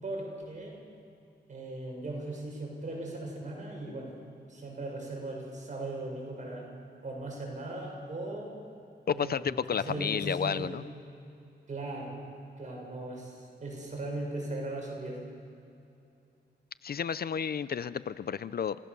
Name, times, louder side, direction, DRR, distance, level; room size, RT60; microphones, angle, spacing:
voice 1, 0.0-0.8 1.5-4.1 4.5-6.7 7.0-8.6 9.1-10.8 11.7-12.2 12.6-15.2, right 2 dB, 45° right, -1 dB, 6.7 m, -38 dB
voice 2, 9.1-10.8 16.8-18.8, left 7 dB, 60° left, 15 dB, 0.5 m, -31 dB
28.5 x 18.0 x 6.9 m, 2.7 s
wide cardioid pair, 180°, 18 cm